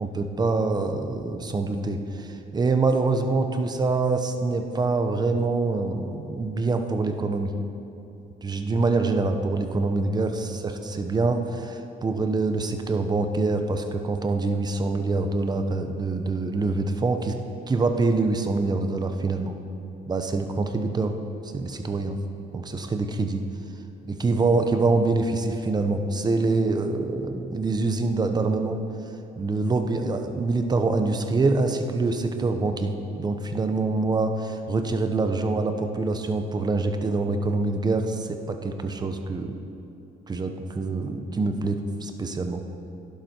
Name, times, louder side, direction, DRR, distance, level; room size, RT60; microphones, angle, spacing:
voice 1, 0.0-7.5 8.4-17.4 17.7-19.6 20.1-21.1 21.4-22.2 22.5-23.4 24.1-28.8 29.4-39.5 40.3-42.6, right 3 dB, 25° right, 6 dB, 0.9 m, -25 dB
12.0 x 11.0 x 4.5 m, 2.9 s
cardioid pair, 110°, 17 cm